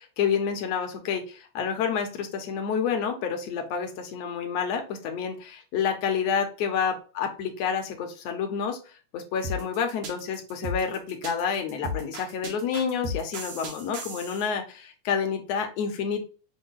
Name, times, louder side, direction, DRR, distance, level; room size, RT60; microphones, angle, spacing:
voice 1, 0.2-8.8 9.1-16.2, left 6 dB, 70° left, 4 dB, 1.7 m, -29 dB
sound 1, 9.4-14.5, left 1 dB, 60° right, 1.8 m, -35 dB
6.2 x 2.1 x 3.8 m, 0.36 s
omnidirectional pair, 3.4 m